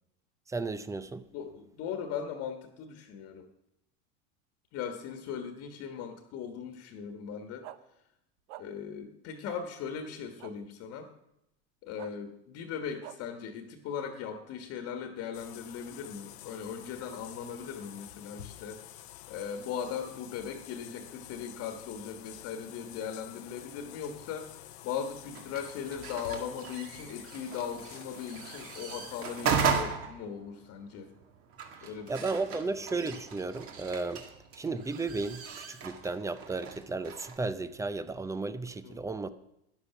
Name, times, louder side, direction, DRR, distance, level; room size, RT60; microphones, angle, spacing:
voice 1, 0.5-1.2 32.1-34.2 34.6-39.3, right 3 dB, 10° right, 0.5 m, -34 dB
voice 2, 1.3-3.5 4.7-7.7 8.6-11.1 11.8-18.9 19.3-31.1 31.8-32.3 32.7-32.8 38.8-39.0, left 7 dB, 50° left, 1.5 m, -39 dB
sound 1, 7.6-7.8 8.5-8.6 9.4-9.6 10.4-10.5 12.0-12.1 13.0-13.2, right 14 dB, 60° right, 0.8 m, -45 dB
sound 2, 15.3-29.8, left 12 dB, 85° left, 1.0 m, -49 dB
sound 3, 25.3-37.4, right 6 dB, 45° right, 2.0 m, -37 dB
12.5 x 10.0 x 5.8 m
supercardioid pair, 125°, 32 cm